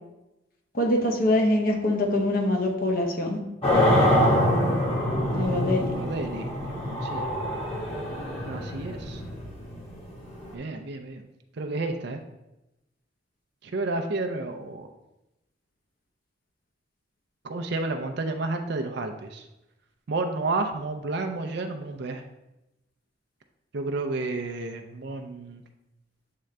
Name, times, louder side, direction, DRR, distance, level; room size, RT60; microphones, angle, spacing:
voice 1, 0.7-3.4 5.3-5.9, left 1 dB, 50° left, 1 dB, 1.0 m, -24 dB
sound 1, 3.6-10.5, left 1 dB, 30° left, 1.5 m, -25 dB
voice 2, 5.0-7.3 8.4-9.2 10.5-11.3 11.6-12.2 13.6-14.9 17.4-19.4 20.1-22.2 23.7-25.6, right 2 dB, 60° right, 5 dB, 0.5 m, -31 dB
7.6 x 3.7 x 3.3 m, 0.93 s
head